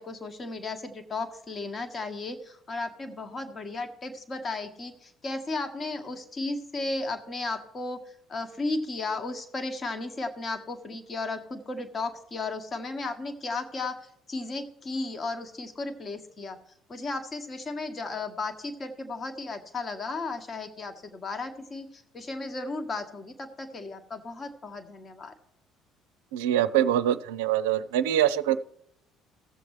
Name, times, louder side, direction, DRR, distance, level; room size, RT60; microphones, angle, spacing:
voice 1, 0.0-8.0 8.3-14.0 14.3-16.6 16.9-25.3, left 3 dB, 35° left, 7 dB, 1.3 m, -34 dB
voice 2, 26.3-28.6, right 11 dB, 75° right, 12 dB, 0.4 m, -24 dB
17.0 x 7.1 x 3.1 m, 0.77 s
hypercardioid pair, 55°, 0 cm